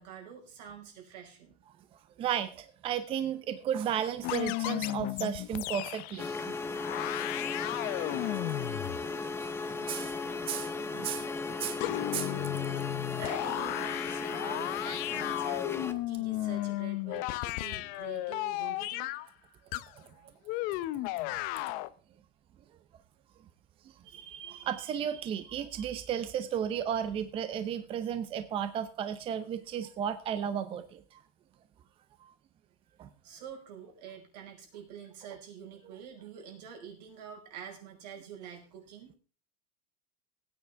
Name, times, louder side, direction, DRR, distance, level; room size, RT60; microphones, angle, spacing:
voice 1, 0.0-1.6 13.2-19.6 33.2-39.1, right 8 dB, 80° right, 2 dB, 5.1 m, -47 dB
voice 2, 2.2-6.6 6.9-7.0 9.8-10.2 10.5-12.3 24.1-31.2 32.2-32.3 33.0-33.1, right 9 dB, 25° right, 11 dB, 0.7 m, -34 dB
sound 1, 4.2-6.4 6.7-9.1 11.8-19.3 19.7-19.9 20.5-21.9, left 17 dB, 45° left, 0.6 m, -34 dB
sound 2, 6.2-15.9, left 4 dB, 10° left, 0.8 m, -36 dB
17.5 x 9.3 x 3.5 m, 0.38 s
supercardioid pair, 155°, 21 cm